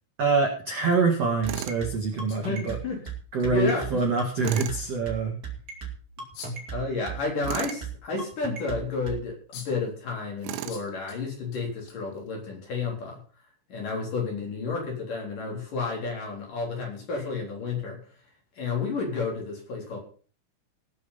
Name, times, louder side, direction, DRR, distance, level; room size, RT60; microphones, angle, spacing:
voice 1, 0.2-2.8 3.3-5.3, right 4 dB, 50° right, 1 dB, 1.9 m, -25 dB
sound 1, 1.4-9.2, right 6 dB, 35° right, 1.6 m, -36 dB
sound 2, 1.5-3.1 3.4-3.5 4.0-4.1 6.3-6.8 9.0-9.1 9.5-9.9 10.7-11.2 11.5-12.5, left 6 dB, 80° left, 5.2 m, -45 dB
Tools, 1.5-1.8 4.4-4.8 7.4-7.8 10.4-10.9, right 14 dB, 80° right, 3.3 m, -34 dB
voice 2, 2.4-3.0 3.4-4.0 6.7-13.2 13.7-18.0 18.6-20.0, left 4 dB, 45° left, -1 dB, 4.9 m, -31 dB
18.0 x 7.2 x 5.7 m, 0.42 s
omnidirectional pair, 5.6 m